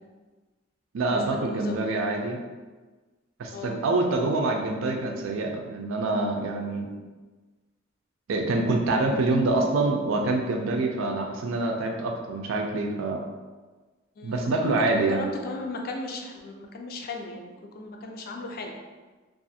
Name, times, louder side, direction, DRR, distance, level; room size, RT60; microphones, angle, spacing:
voice 1, 0.9-2.4 3.4-6.9 8.3-13.3 14.2-15.3, right 2 dB, 70° right, 2 dB, 0.4 m, -26 dB
voice 2, 1.5-2.0 3.5-3.9 9.1-9.4 11.0-11.4 14.2-18.8, left 2 dB, 50° left, 2 dB, 0.4 m, -36 dB
2.4 x 2.3 x 2.7 m, 1.3 s
head